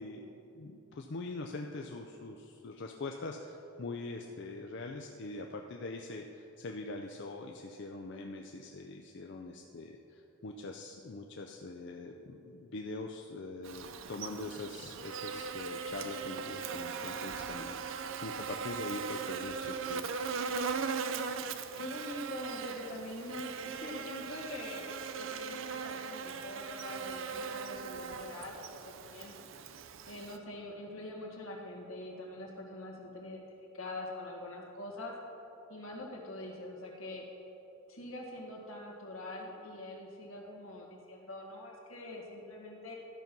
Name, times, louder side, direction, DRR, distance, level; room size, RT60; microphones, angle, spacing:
voice 1, 0.0-20.1, left 2 dB, 55° left, 2 dB, 0.5 m, -43 dB
Buzz, 13.6-30.4, right 5 dB, 65° right, 0.5 m, -39 dB
voice 2, 21.8-24.8 25.2-29.3 30.0-33.5 33.7-35.1 35.7-37.2 37.9-42.9, left 1 dB, 80° left, -2 dB, 1.8 m, -44 dB
12.5 x 5.3 x 5.9 m, 2.9 s
head